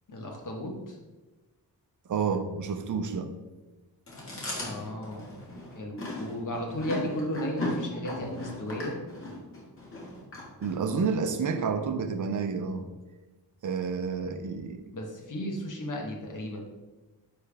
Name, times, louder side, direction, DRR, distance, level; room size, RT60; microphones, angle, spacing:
voice 1, 0.1-1.0 4.6-5.3 5.7-9.0 14.9-16.6, equal, 50° left, 1 dB, 1.2 m, -34 dB
voice 2, 2.1-3.3 10.6-12.9 13.6-14.8, right 5 dB, 50° right, 8 dB, 0.6 m, -29 dB
Chewing mastication, 4.1-11.1, left 1 dB, 35° left, 1.7 m, -37 dB
9.9 x 3.4 x 3.4 m, 1.1 s
wide cardioid pair, 175°, 38 cm